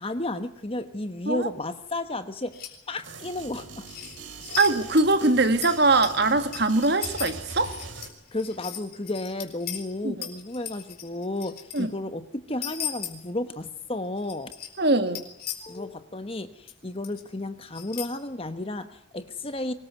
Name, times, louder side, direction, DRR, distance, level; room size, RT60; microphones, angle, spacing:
voice 1, 0.0-2.5 2.9-3.9 8.3-14.5 15.6-19.7, left 2 dB, 30° left, 1.2 m, -33 dB
sound 1, 2.5-2.8 3.9-4.7 5.0-5.1 5.6-9.8 10.2-11.8 12.6-13.1 14.2-14.7 15.1-15.8 16.7-16.8 17.0-17.2 17.7-18.1, left 10 dB, 50° left, 4.1 m, -36 dB
sound 2, 3.0-8.1, right 4 dB, 70° right, 4.0 m, -42 dB
voice 2, 4.6-7.8 10.0-10.3 11.7-11.9 14.8-15.3, right 2 dB, 55° right, 1.7 m, -22 dB
24.0 x 20.0 x 9.4 m
head